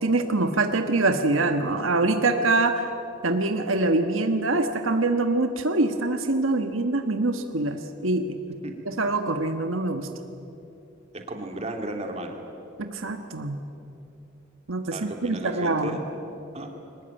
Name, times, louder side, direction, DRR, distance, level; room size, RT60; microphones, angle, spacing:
voice 1, 0.0-2.8 3.2-8.4 8.8-10.1 12.8-13.6 14.7-16.0, right 2 dB, 85° right, 7 dB, 1.4 m, -24 dB
voice 2, 11.1-12.4 14.9-16.0 16.5-16.7, right 1 dB, 30° right, 3 dB, 2.7 m, -34 dB
23.0 x 19.5 x 9.0 m, 2.8 s
head